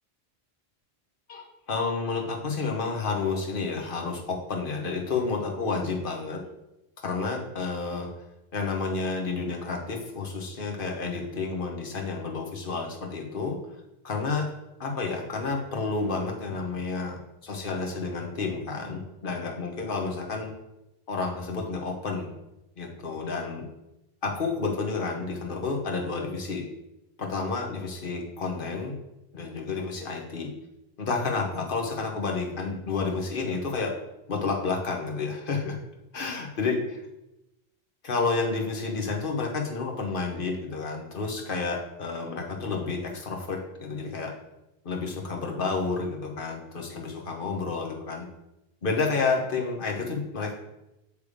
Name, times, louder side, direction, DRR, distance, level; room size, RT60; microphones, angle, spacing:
voice 1, 1.3-6.4 7.0-8.1 8.5-13.6 14.0-14.5 14.8-20.5 21.1-22.3 22.8-23.6 24.2-26.6 27.2-28.9 29.3-30.5 31.0-33.9 34.3-35.8 36.1-37.0 38.0-44.3 44.8-48.3 48.8-50.6, left 4 dB, 55° left, 1 dB, 1.2 m, -30 dB
8.2 x 3.4 x 4.9 m, 0.93 s
omnidirectional pair, 1.1 m